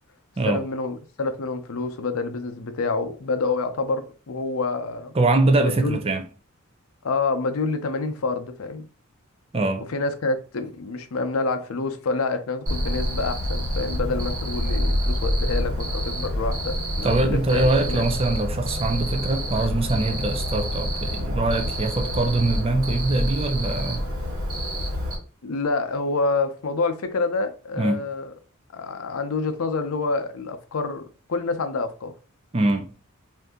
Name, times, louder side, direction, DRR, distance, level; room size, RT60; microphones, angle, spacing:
voice 1, 0.4-5.1 5.6-6.0 7.0-8.9 9.9-18.1 19.6-19.7 25.4-28.3 28.7-32.1, left 3 dB, 80° left, 0.6 m, -27 dB
voice 2, 5.1-6.2 9.5-9.9 17.0-24.0 27.8-28.0 32.5-32.9, right 2 dB, 25° right, 0.5 m, -23 dB
Cricket, 12.7-25.2, equal, 90° right, 1.2 m, -27 dB
2.7 x 2.6 x 3.5 m
head